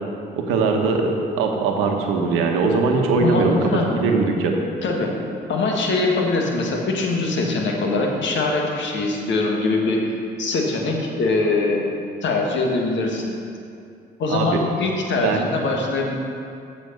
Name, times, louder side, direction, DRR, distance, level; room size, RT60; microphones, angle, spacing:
voice 1, 0.3-4.6 14.3-14.6 15.2-15.5, right 4 dB, 80° right, 2 dB, 1.1 m, -21 dB
voice 2, 3.2-3.9 4.8-5.1 5.5-11.8 12.2-13.3 14.2-16.1, left 3 dB, 60° left, 0 dB, 1.6 m, -22 dB
7.8 x 6.3 x 6.5 m, 2.4 s
hypercardioid pair, 55°, 21 cm